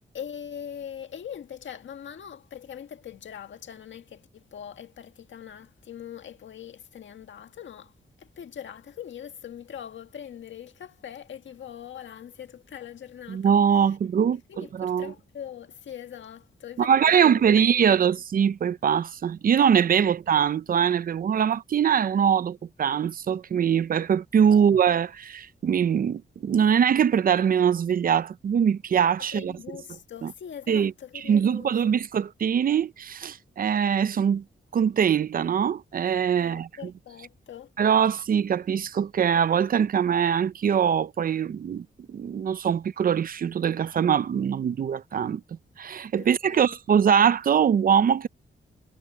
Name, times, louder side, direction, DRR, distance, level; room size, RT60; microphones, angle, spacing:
voice 1, 0.1-7.9 8.2-14.0 14.5-16.9 17.2-17.3 17.9-18.2 20.0-20.1 24.5-24.8 29.3-31.7 36.3-37.7 46.2-46.8, left 9 dB, 75° left, 1.8 m, -42 dB
voice 2, 13.3-15.1 16.8-29.5 30.2-30.3 30.7-34.4 34.7-36.9 37.8-45.4 45.8-48.3, right 8 dB, 45° right, 0.5 m, -23 dB
wide cardioid pair, 160°, 20 cm